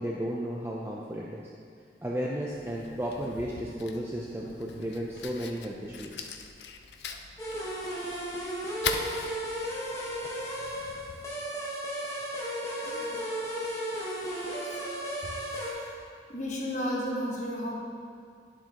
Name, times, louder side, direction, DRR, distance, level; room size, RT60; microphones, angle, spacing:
voice 1, 0.0-1.5 2.0-6.2, equal, 15° right, -3 dB, 0.4 m, -34 dB
Fire, 2.5-11.3, left 5 dB, 70° left, 0.5 m, -41 dB
sound 1, 7.4-15.7, equal, 15° left, 1.3 m, -34 dB
voice 2, 12.8-13.2 14.6-14.8 15.4-16.0 16.3-17.8, equal, 40° left, -3 dB, 1.3 m, -34 dB
10.5 x 7.4 x 2.9 m, 2.3 s
head